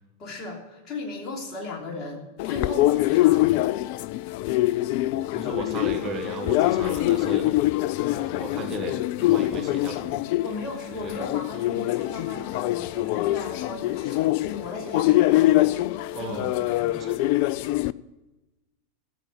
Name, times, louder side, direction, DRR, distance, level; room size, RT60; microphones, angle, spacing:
voice 1, 0.2-3.5 10.4-15.8 16.1-16.9, left 3 dB, 30° left, 0 dB, 3.1 m, -36 dB
sound 1, 2.4-17.9, left 16 dB, 45° left, 0.3 m, -24 dB
voice 2, 5.1-7.5 8.1-10.2 11.0-11.2 15.6-15.7 16.1-16.5 16.9-17.3, right 4 dB, 25° right, 3 dB, 1.5 m, -36 dB
14.5 x 8.1 x 7.2 m, 1.1 s
figure-of-eight pair, 90°, 0 cm